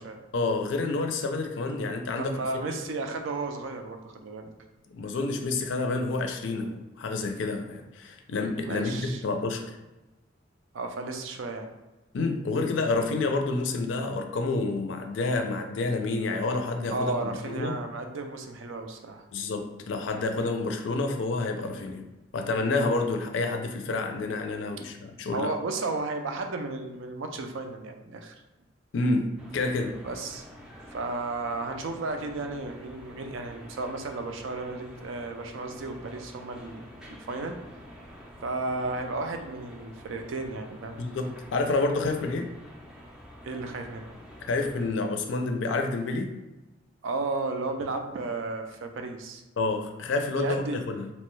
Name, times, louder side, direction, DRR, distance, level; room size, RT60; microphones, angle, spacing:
voice 1, 0.3-2.4 2.6-2.8 4.9-9.8 12.1-17.8 19.3-22.0 22.3-25.5 28.9-30.0 41.0-42.5 44.4-46.4 49.6-51.1, left 3 dB, 70° left, 5 dB, 0.4 m, -29 dB
voice 2, 2.2-4.5 8.6-9.2 10.7-11.7 16.9-19.2 25.3-28.3 30.0-30.5 30.9-36.8 37.1-37.6 38.4-41.0 43.4-44.1 47.0-49.4 50.3-50.8, right 3 dB, 75° right, 5 dB, 0.4 m, -33 dB
sound 1, 29.4-44.9, equal, 5° right, 0.4 m, -48 dB
2.9 x 2.2 x 3.1 m, 1.1 s
head